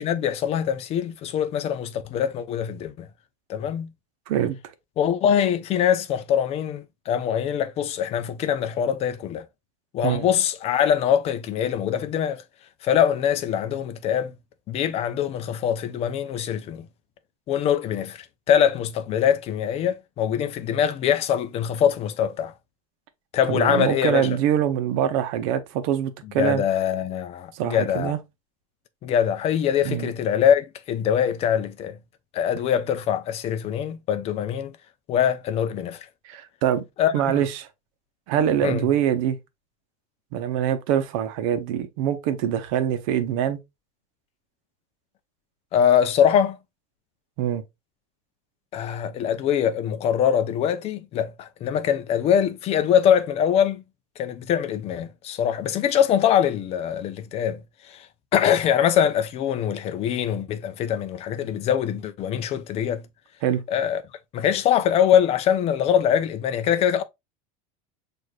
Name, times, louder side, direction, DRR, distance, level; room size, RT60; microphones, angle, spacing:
voice 1, 0.0-3.1 3.5-3.9 5.0-9.4 9.9-12.4 12.8-14.3 14.7-16.8 17.5-22.5 23.3-24.4 26.4-28.1 29.0-32.0 32.3-34.7 35.1-36.1 37.0-37.4 38.6-38.9 45.7-46.6 48.7-53.8 54.2-57.6 57.9-58.1 58.3-63.0 63.7-64.0 64.3-67.0, left 9 dB, 35° left, 0.4 m, -23 dB
voice 2, 23.5-26.6 27.5-28.2 29.8-30.1 36.2-36.8 37.1-37.7 38.3-39.4 40.3-43.6 47.4-47.6 63.4-63.6, right 10 dB, 70° right, 0.8 m, -24 dB
6.3 x 2.5 x 2.3 m
supercardioid pair, 135°, 17 cm